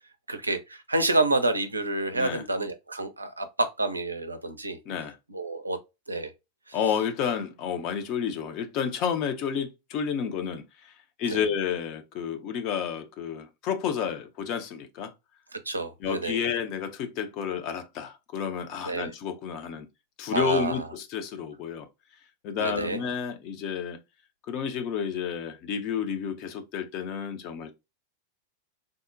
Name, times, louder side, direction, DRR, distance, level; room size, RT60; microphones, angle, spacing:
voice 1, 0.3-4.8 5.3-5.8 6.1-6.3 6.7-6.8 11.3-11.4 15.5-16.4 18.8-19.1 20.3-20.9 22.6-23.0, right 2 dB, 80° right, 0.4 m, -28 dB
voice 2, 4.9-5.2 6.7-10.9 11.2-15.1 16.0-19.9 20.2-21.9 22.4-24.0 24.5-27.7, left 7 dB, 40° left, 0.5 m, -30 dB
3.5 x 2.1 x 2.4 m
figure-of-eight pair, 90°, 0 cm